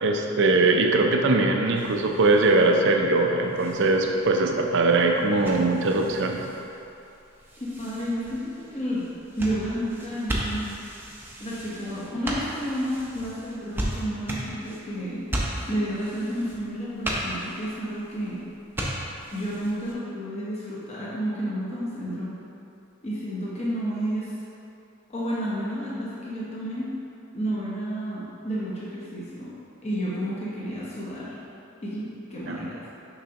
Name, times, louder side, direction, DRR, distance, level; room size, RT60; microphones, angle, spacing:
voice 1, 0.0-6.4 32.5-32.6, right 2 dB, 55° right, 3 dB, 0.5 m, -21 dB
sound 1, 1.7-19.9, right 1 dB, 10° right, 0.6 m, -36 dB
voice 2, 7.6-9.1 9.4-10.7 11.4-15.2 15.7-18.4 19.3-22.3 23.0-24.3 25.1-26.9 27.3-29.5 29.8-31.3 31.8-32.9, equal, 30° left, -8 dB, 0.9 m, -31 dB
6.8 x 5.3 x 2.9 m, 2.8 s
head